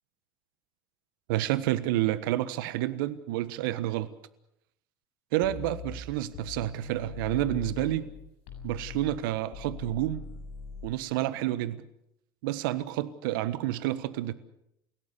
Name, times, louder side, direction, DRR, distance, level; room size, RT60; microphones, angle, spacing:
voice 1, 1.3-4.1 5.3-8.1 8.6-10.2 10.8-11.8 12.4-14.3, right 15 dB, 70° right, 1.4 m, -29 dB
sound 1, 5.4-8.1 8.5-10.9, left 6 dB, 65° left, 7.5 m, -41 dB
29.5 x 17.5 x 6.9 m
hypercardioid pair, 75°, 12 cm